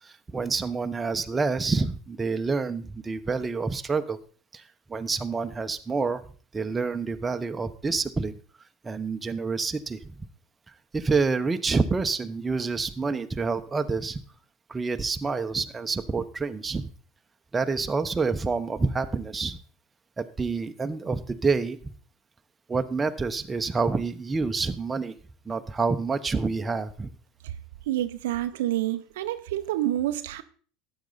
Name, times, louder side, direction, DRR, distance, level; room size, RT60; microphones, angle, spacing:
voice 1, 0.0-4.2 4.5-4.6 4.9-6.2 6.5-8.3 8.8-10.2 10.9-14.2 14.7-16.9 17.5-19.6 20.2-21.8 22.7-25.2 25.4-27.1, right 4 dB, 20° right, 1.0 m, -28 dB
voice 2, 27.9-30.4, right 13 dB, 75° right, 0.6 m, -28 dB
13.0 x 9.0 x 4.0 m
hypercardioid pair, 85°, 0 cm